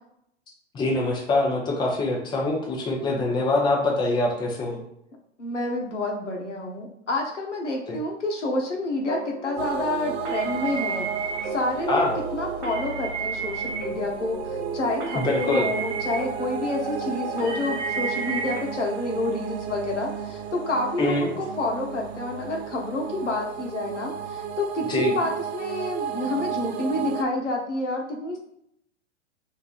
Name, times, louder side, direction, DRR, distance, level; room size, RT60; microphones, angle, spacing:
voice 1, 0.7-4.8 7.9-8.0 11.9-12.1 15.1-15.7 21.0-21.3 24.9-25.1, left 2 dB, 15° left, -1 dB, 0.6 m, -24 dB
voice 2, 5.4-11.1 11.4-12.0 12.3-28.4, left 2 dB, 90° left, 0 dB, 0.9 m, -29 dB
sound 1, 9.1-18.6, right 4 dB, 45° right, 1.2 m, -33 dB
sound 2, 9.6-27.2, right 7 dB, 65° right, 0.5 m, -34 dB
3.1 x 2.7 x 2.4 m, 0.75 s
figure-of-eight pair, 105°, 35 cm